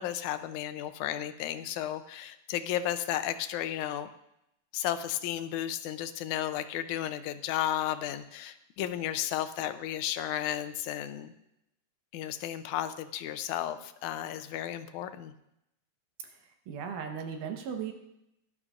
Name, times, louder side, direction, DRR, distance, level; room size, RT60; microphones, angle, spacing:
voice 1, 0.0-4.1 4.7-11.3 12.1-15.3, left 11 dB, 80° left, 11 dB, 2.0 m, -33 dB
voice 2, 16.7-17.9, right 7 dB, 80° right, 4 dB, 2.6 m, -36 dB
17.0 x 12.0 x 2.5 m, 0.82 s
omnidirectional pair, 3.6 m